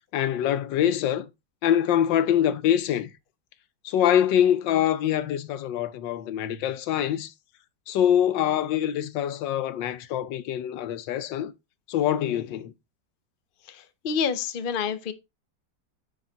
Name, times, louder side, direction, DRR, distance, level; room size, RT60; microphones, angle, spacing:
voice 1, 0.1-1.3 1.6-3.1 3.8-7.3 7.9-11.5 11.9-12.7, left 10 dB, 85° left, 1.4 m, -24 dB
voice 2, 13.6-15.1, left 6 dB, 50° left, 0.6 m, -28 dB
10.0 x 4.6 x 3.9 m
omnidirectional pair, 1.9 m